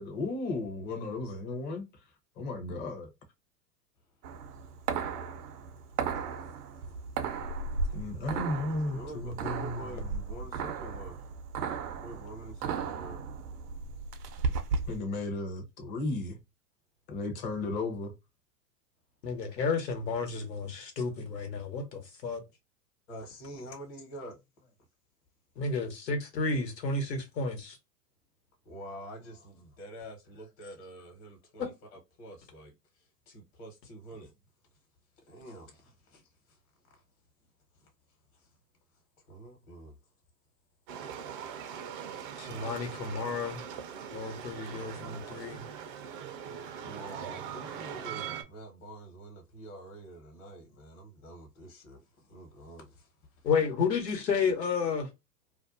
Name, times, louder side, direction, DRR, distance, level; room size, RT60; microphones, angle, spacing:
voice 1, 0.0-2.0 2.4-3.1 7.9-10.1 14.9-16.4 17.1-18.2, left 2 dB, 20° left, 0.6 m, -34 dB
sound 1, 4.2-15.0, right 5 dB, 75° right, 0.6 m, -35 dB
voice 2, 4.6-6.0 8.9-11.3 12.0-13.2 23.1-24.4 28.6-34.3 35.3-36.6 36.9-37.0 37.7-37.9 38.3-38.5 39.3-40.0 46.8-53.5, right 1 dB, 50° left, 1.1 m, -47 dB
voice 3, 19.2-22.4 25.6-27.8 42.4-43.6 44.1-45.6 53.4-55.1, left 4 dB, 85° left, 1.1 m, -31 dB
sound 2, 40.9-48.4, right 8 dB, 35° right, 0.4 m, -41 dB
2.5 x 2.2 x 2.4 m
hypercardioid pair, 110°, 48 cm